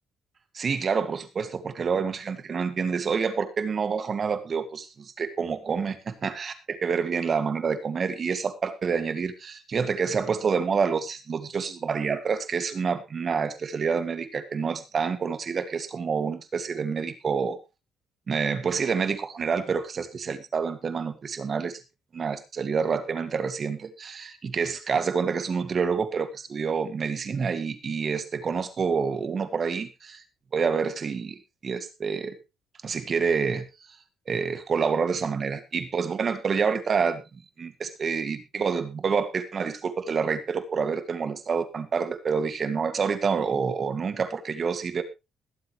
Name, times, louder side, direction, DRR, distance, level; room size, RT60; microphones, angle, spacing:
voice 1, 0.5-17.6 18.3-21.8 22.1-30.2 30.5-32.4 32.8-33.6 34.3-45.0, right 5 dB, 45° right, 10 dB, 2.1 m, -28 dB
21.5 x 7.9 x 3.2 m, 0.25 s
cardioid pair, 90°, 0 cm